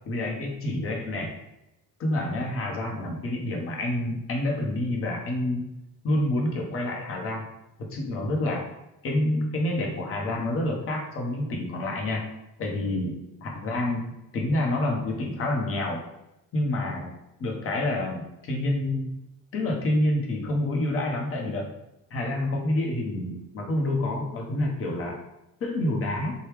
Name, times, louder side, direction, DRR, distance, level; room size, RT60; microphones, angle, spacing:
voice 1, 0.1-1.3 2.0-5.7 6.0-7.4 7.8-8.6 9.0-12.2 12.6-13.1 13.4-14.0 14.3-16.0 16.5-17.1 17.4-19.1 19.5-21.7 22.1-25.2 25.6-26.3, left 1 dB, 45° left, 1 dB, 0.9 m, -28 dB
3.1 x 2.2 x 3.3 m, 0.91 s
cardioid pair, 130°, 32 cm